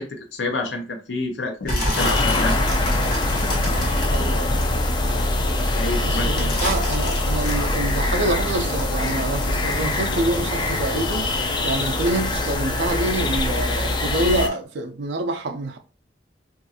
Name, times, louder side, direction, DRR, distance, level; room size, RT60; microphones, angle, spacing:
voice 1, 0.0-2.6 5.7-6.5, left 2 dB, 75° left, 0.6 m, -28 dB
sound 1, 1.6-5.2 5.6-10.4 10.7-13.4 13.7-14.1 14.5-14.6, left 1 dB, 50° left, 1.2 m, -31 dB
sound 2, 2.0-14.5, left 2 dB, 25° left, 0.3 m, -23 dB
voice 2, 4.1-4.6 6.0-11.3 11.6-15.8, right 2 dB, 65° right, 0.4 m, -26 dB
2.5 x 2.4 x 2.6 m
head